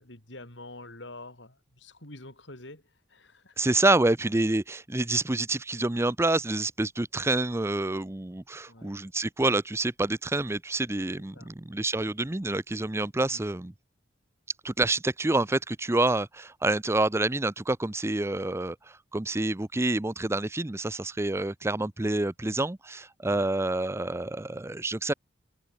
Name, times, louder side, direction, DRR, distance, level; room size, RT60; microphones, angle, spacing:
voice 1, 0.0-2.8 3.1-3.7 8.7-8.9 11.3-11.5 13.3-13.4 23.3-23.5, left 2 dB, 70° left, 5.6 m, -46 dB
voice 2, 3.6-13.7 14.6-25.1, right 2 dB, 15° right, 0.6 m, -27 dB
head